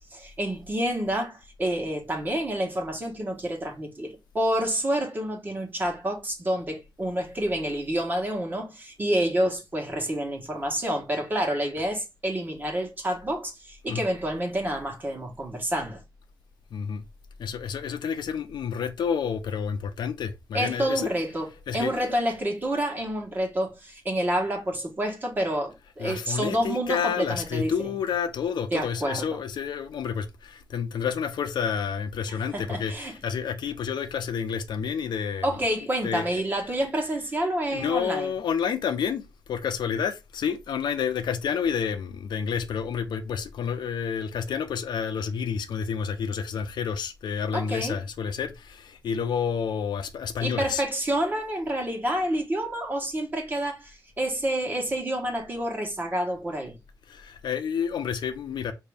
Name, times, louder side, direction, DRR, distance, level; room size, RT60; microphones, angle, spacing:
voice 1, 0.1-16.0 20.5-27.7 28.7-29.4 32.3-33.1 35.4-38.3 47.5-48.0 50.4-56.8, right 1 dB, 25° right, 1.2 m, -28 dB
voice 2, 16.7-17.0 17.4-21.1 21.7-22.2 26.0-35.5 36.0-36.4 37.7-50.8 57.1-58.7, left 7 dB, 75° left, 0.7 m, -29 dB
5.1 x 2.7 x 3.4 m
wide cardioid pair, 155°, 8 cm